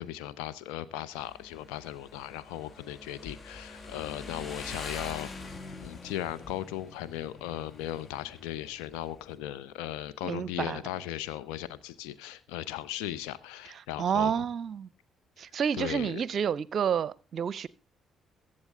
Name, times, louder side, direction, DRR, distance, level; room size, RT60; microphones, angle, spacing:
voice 1, 0.0-5.3 5.8-14.4 15.7-16.2, left 12 dB, 70° left, 0.9 m, -37 dB
Motorcycle, 1.1-9.4, left 3 dB, 40° left, 1.5 m, -45 dB
voice 2, 10.2-10.8 13.7-14.9 15.4-17.7, right 7 dB, 50° right, 0.6 m, -30 dB
22.5 x 7.7 x 3.7 m
figure-of-eight pair, 45°, 0 cm